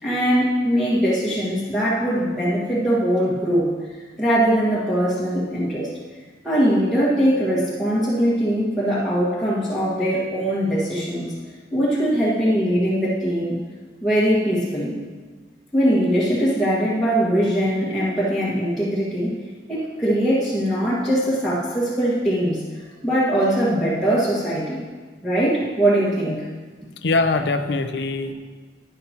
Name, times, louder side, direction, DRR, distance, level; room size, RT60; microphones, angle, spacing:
voice 1, 0.0-3.6 4.2-5.9 6.4-11.4 11.7-13.6 14.0-15.0 15.7-19.3 19.7-22.6 23.0-24.8 25.2-26.5, equal, ahead, -11 dB, 1.6 m, -21 dB
voice 2, 27.0-28.3, left 3 dB, 70° left, 8 dB, 0.6 m, -22 dB
11.5 x 10.0 x 2.9 m, 1.4 s
head